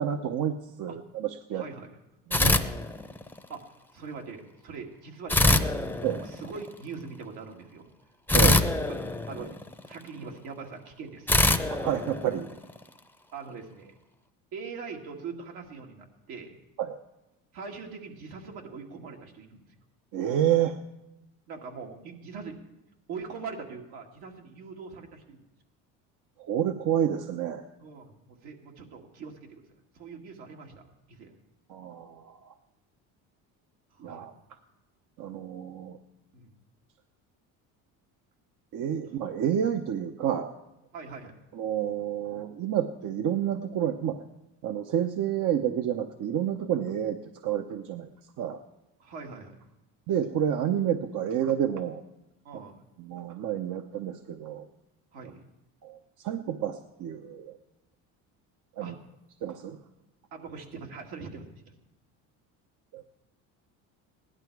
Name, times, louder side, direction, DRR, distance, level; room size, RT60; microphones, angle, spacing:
voice 1, 0.0-1.6 2.3-2.7 6.0-6.3 8.3-8.7 11.7-12.5 16.8-17.0 20.1-20.8 26.4-27.7 31.7-32.5 34.0-34.3 35.2-36.0 38.7-40.5 41.5-44.2 44.6-48.1 48.4-48.6 50.1-52.0 52.5-52.6 53.0-54.7 55.8-57.6 58.8-58.9 59.4-59.8 62.9-63.1, right 10 dB, 55° right, 7 dB, 0.9 m, -29 dB
voice 2, 1.5-1.9 3.5-3.7 3.9-5.7 6.2-7.9 9.3-9.6 9.8-11.3 13.3-13.9 14.5-16.6 17.5-19.7 21.5-22.6 23.1-25.4 27.8-29.6 29.9-30.8 31.1-31.4 33.9-34.3 36.3-36.5 40.9-41.4 49.0-49.6 52.4-52.8 55.1-55.4 58.8-58.9 60.3-61.5, right 5 dB, 75° right, 1 dB, 2.3 m, -42 dB
sound 1, 2.3-3.5 5.3-6.7 8.3-10.0 11.3-12.8, left 2 dB, 5° left, 0.7 m, -24 dB
16.5 x 11.5 x 4.7 m, 0.92 s
supercardioid pair, 100°, 37 cm